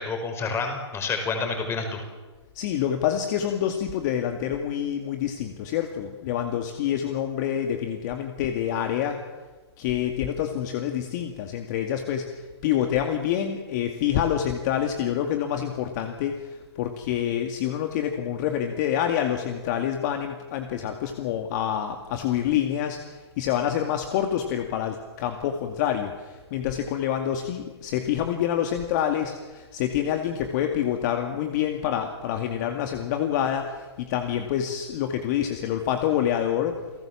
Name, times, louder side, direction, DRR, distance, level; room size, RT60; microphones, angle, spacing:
voice 1, 0.0-2.0, left 4 dB, 15° left, 5 dB, 5.4 m, -29 dB
voice 2, 2.5-9.2 9.8-36.8, left 10 dB, 40° left, 5 dB, 2.3 m, -27 dB
29.5 x 18.0 x 7.3 m, 1.3 s
hypercardioid pair, 130°, 14 cm